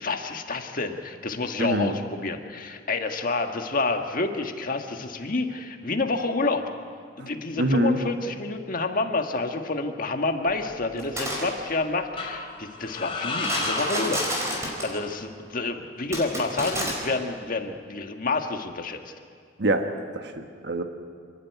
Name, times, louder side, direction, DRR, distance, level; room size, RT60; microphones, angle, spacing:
voice 1, 0.0-6.6 7.2-19.0, left 3 dB, 45° left, 5 dB, 1.5 m, -29 dB
voice 2, 1.6-2.0 7.2-7.3 7.6-8.0 19.6-19.9 20.1-20.8, right 1 dB, 60° right, 6 dB, 1.3 m, -25 dB
sound 1, 10.5-11.3 12.2-15.0, left 3 dB, 30° left, 2.7 m, -34 dB
sound 2, 11.0-11.5 13.4-15.0 16.1-16.9, equal, 15° right, 4.5 m, -29 dB
28.0 x 11.5 x 9.3 m, 2.1 s
head